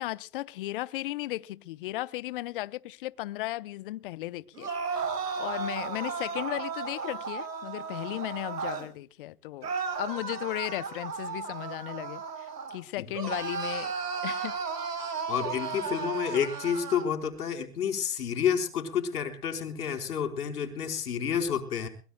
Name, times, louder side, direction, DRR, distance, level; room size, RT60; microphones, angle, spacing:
voice 1, 0.0-5.0 5.4-12.2 12.7-13.9 14.2-14.5, left 16 dB, 35° left, 0.7 m, -35 dB
sound 1, 4.5-8.9 9.6-12.8 13.1-17.1, right 5 dB, 90° right, 4.7 m, -34 dB
voice 2, 15.3-21.9, left 8 dB, 75° left, 4.4 m, -30 dB
23.0 x 21.0 x 2.2 m
hypercardioid pair, 145°, 46 cm